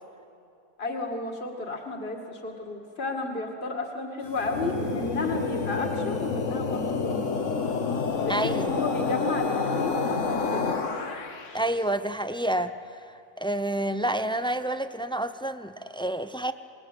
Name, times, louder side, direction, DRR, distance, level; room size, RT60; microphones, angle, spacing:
voice 1, 0.8-7.2 8.1-10.7, left 2 dB, 45° left, 2 dB, 2.5 m, -32 dB
sound 1, 4.3-11.6, left 4 dB, 60° left, 1.7 m, -29 dB
voice 2, 8.3-8.7 11.5-16.5, right 1 dB, 5° left, 11 dB, 0.4 m, -29 dB
27.5 x 20.5 x 9.0 m, 2.6 s
omnidirectional pair, 1.5 m